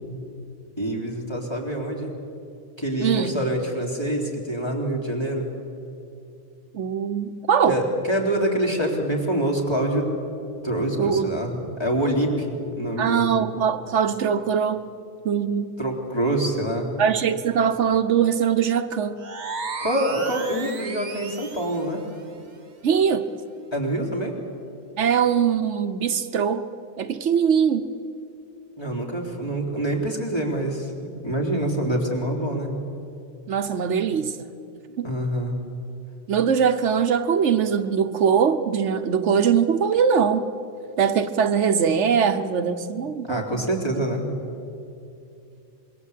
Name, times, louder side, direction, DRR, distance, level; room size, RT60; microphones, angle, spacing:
voice 1, 0.8-2.1 2.8-5.5 7.7-10.1 10.6-13.3 15.8-17.0 19.8-22.0 23.7-24.3 28.8-32.7 35.0-35.6 43.3-44.3, right 1 dB, 20° left, -1 dB, 3.8 m, -26 dB
voice 2, 3.0-3.3 6.7-7.8 11.0-11.3 13.0-14.9 15.2-15.7 17.0-19.2 22.8-23.3 25.0-26.7 27.0-27.9 33.5-34.3 35.0-35.1 36.3-40.5 41.0-43.7, right 7 dB, 80° right, 9 dB, 1.2 m, -22 dB
sound 1, 19.2-21.9, right 4 dB, 40° right, 1.2 m, -34 dB
26.0 x 22.5 x 8.3 m, 2.7 s
omnidirectional pair, 1.2 m